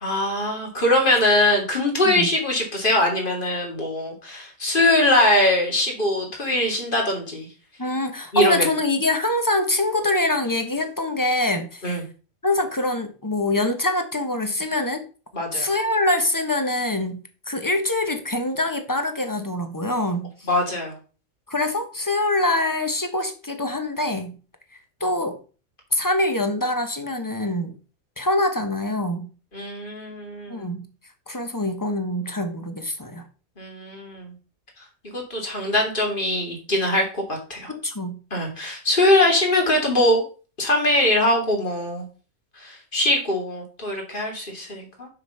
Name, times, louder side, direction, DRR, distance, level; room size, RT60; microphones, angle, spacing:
voice 1, 0.0-7.5 8.3-8.7 11.8-12.0 15.3-15.7 20.4-20.9 29.5-30.7 33.6-34.3 35.1-37.7 38.3-40.2 40.6-42.0 42.6-45.1, left 1 dB, 35° left, 1 dB, 2.7 m, -22 dB
voice 2, 7.8-11.8 12.4-15.0 15.5-17.2 17.5-20.3 21.5-24.3 24.7-25.4 25.9-27.8 28.2-29.3 30.5-30.8 31.3-33.2 37.7-38.2, left 1 dB, 15° left, 7 dB, 1.1 m, -24 dB
6.6 x 6.2 x 5.6 m, 0.36 s
omnidirectional pair, 1.5 m